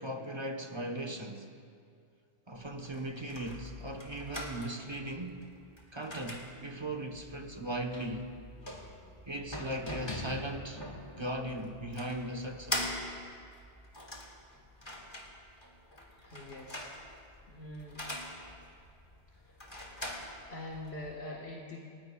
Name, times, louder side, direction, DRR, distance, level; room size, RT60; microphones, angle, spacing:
voice 1, 0.0-1.5 2.5-5.4 5.9-8.3 9.3-12.9, right 1 dB, 25° right, 1.0 m, -38 dB
sound 1, 2.5-21.1, left 1 dB, 25° left, 1.9 m, -43 dB
voice 2, 16.2-17.0 17.5-18.1 19.3-19.6 20.5-21.9, left 1 dB, 70° left, 1.8 m, -44 dB
29.0 x 19.0 x 2.3 m
omnidirectional pair, 1.1 m